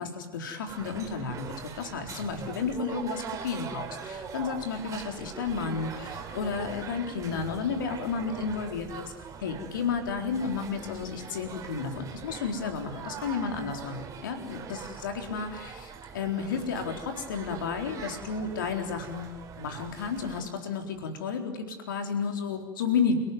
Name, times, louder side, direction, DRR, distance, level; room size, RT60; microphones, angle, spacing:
voice 1, 0.0-9.1 9.4-19.3 19.6-23.2, left 5 dB, 70° left, 4 dB, 4.0 m, -32 dB
sound 1, 0.7-20.4, right 7 dB, 30° right, 3.3 m, -42 dB
29.0 x 18.5 x 9.4 m, 1.2 s
figure-of-eight pair, 80°, 11 cm